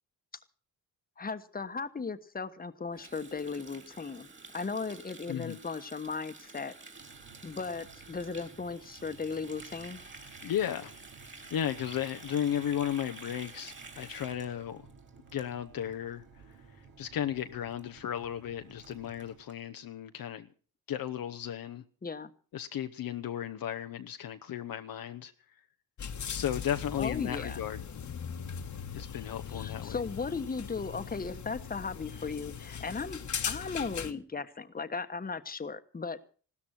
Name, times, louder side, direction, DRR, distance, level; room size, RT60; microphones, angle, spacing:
voice 1, 1.2-4.3 4.5-6.7 7.4-10.0 22.0-22.3 27.0-27.6 29.5-33.2 33.5-36.2, left 4 dB, 25° left, 1.2 m, -36 dB
Water tap faucet, 2.9-15.9 16.2-16.5 16.8-17.1 17.4-17.5 17.7-17.8 18.2-18.3 18.5-19.5, right 3 dB, 30° right, 3.3 m, -50 dB
voice 2, 5.3-5.6 10.4-10.9 11.5-14.9 15.3-16.2 17.0-20.5 20.9-21.8 22.5-25.3 26.3-27.8 28.9-30.0, left 10 dB, 70° left, 0.9 m, -34 dB
sound 1, 6.9-19.4, right 5 dB, 65° right, 2.8 m, -56 dB
sound 2, 26.0-34.1, left 7 dB, 50° left, 1.4 m, -39 dB
16.0 x 13.0 x 6.0 m
cardioid pair, 85°, 37 cm